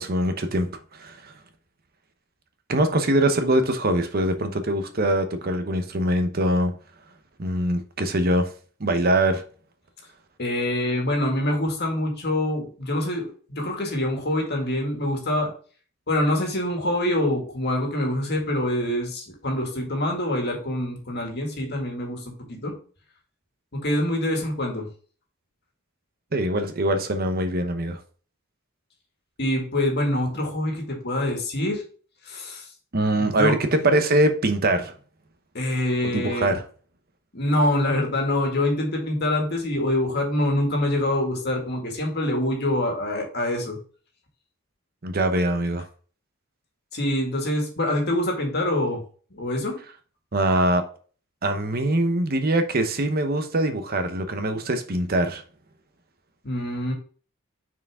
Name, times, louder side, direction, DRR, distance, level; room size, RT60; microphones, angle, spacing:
voice 1, 0.0-1.3 2.7-6.7 7.4-8.5 8.8-9.4 26.3-28.0 32.9-34.9 36.1-36.6 45.0-45.8 50.3-50.8 51.4-55.4, right 1 dB, 45° right, 0.9 m, -23 dB
voice 2, 10.4-15.5 16.1-22.7 23.7-24.9 29.4-31.8 32.3-32.7 33.2-33.5 35.5-36.6 37.3-43.8 46.9-49.0 49.3-49.8 56.4-56.9, left 1 dB, 55° left, 1.9 m, -25 dB
6.1 x 4.7 x 3.6 m
head